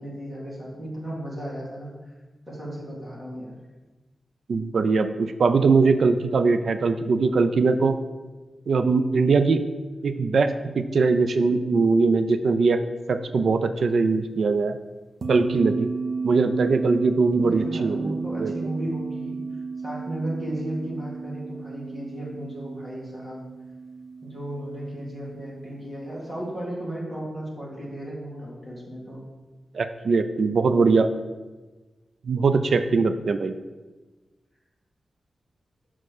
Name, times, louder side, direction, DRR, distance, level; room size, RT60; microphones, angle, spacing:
voice 1, 0.0-2.1 2.5-3.6 17.4-19.4 19.8-23.4 24.2-29.2, right 1 dB, 20° right, -5 dB, 1.8 m, -34 dB
voice 2, 4.5-7.9 8.7-9.6 10.0-12.8 13.1-14.8 15.3-15.9 16.2-18.5 29.7-31.1 32.3-33.5, right 4 dB, 65° right, 9 dB, 0.4 m, -21 dB
sound 1, 15.2-26.5, right 4 dB, 45° right, 0.8 m, -33 dB
6.0 x 4.3 x 6.5 m, 1.2 s
wide cardioid pair, 150°, 0 cm